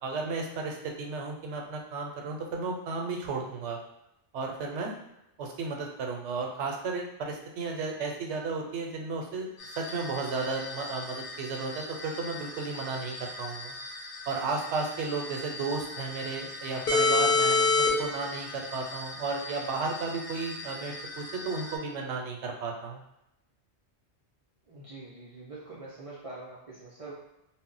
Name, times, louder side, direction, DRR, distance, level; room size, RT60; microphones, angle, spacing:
voice 1, 0.0-3.8 4.3-4.9 5.4-9.5 9.8-13.8 14.3-23.0, right 4 dB, 85° right, 1 dB, 0.9 m, -34 dB
sound 1, 9.6-21.7, left 3 dB, 55° left, 0.8 m, -30 dB
voice 2, 24.7-27.1, right 2 dB, 50° right, -7 dB, 0.4 m, -44 dB
2.1 x 2.0 x 3.7 m, 0.88 s
omnidirectional pair, 1.2 m